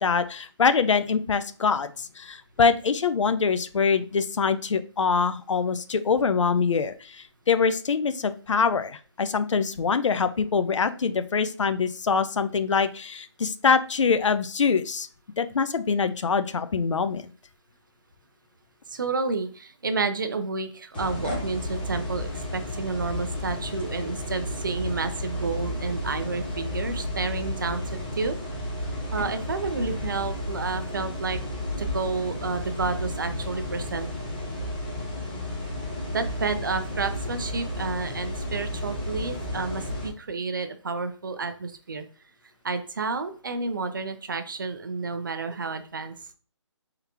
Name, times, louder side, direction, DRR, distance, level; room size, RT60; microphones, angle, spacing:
voice 1, 0.0-15.1 15.4-17.2, left 5 dB, 90° left, 12 dB, 0.5 m, -24 dB
voice 2, 18.9-28.4 29.1-31.4 31.8-34.1 36.1-42.0 42.6-46.1, right 4 dB, 45° right, 8 dB, 0.5 m, -30 dB
sound 1, 20.9-40.1, left 1 dB, 20° left, 0.8 m, -32 dB
3.8 x 3.5 x 2.9 m, 0.39 s
hypercardioid pair, 175°, 15 cm